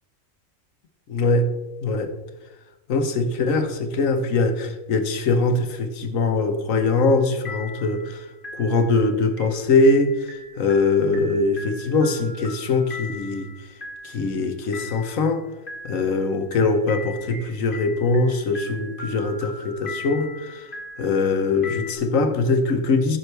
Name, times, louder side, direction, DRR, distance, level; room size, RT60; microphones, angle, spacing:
voice 1, 1.1-1.5 1.8-2.1 2.9-8.2 8.6-10.1 10.6-13.5 14.0-15.4 15.8-20.6 21.0-23.2, left 3 dB, 80° left, 7 dB, 1.4 m, -22 dB
sound 1, 6.8-7.2 7.5-22.0, left 3 dB, 40° left, 2.2 m, -40 dB
15.0 x 6.4 x 3.3 m, 1.1 s
omnidirectional pair, 1.4 m